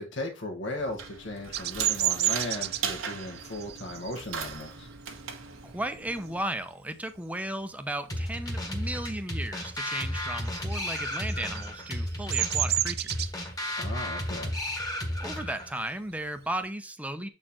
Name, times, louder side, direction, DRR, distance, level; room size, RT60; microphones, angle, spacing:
voice 1, 0.0-4.9 13.8-14.5, left 1 dB, 65° left, 1.6 m, -36 dB
sound 1, 0.8-6.4, right 6 dB, 85° right, 1.3 m, -39 dB
Bird vocalization bird call bird song, 1.5-6.7 7.2-7.5 7.8-9.0 9.3-16.7, right 14 dB, 55° right, 0.4 m, -33 dB
voice 2, 5.6-13.3 15.2-17.3, right 1 dB, 5° right, 0.7 m, -35 dB
sound 2, 8.1-15.7, left 1 dB, 20° left, 1.5 m, -33 dB
7.2 x 4.5 x 4.3 m
head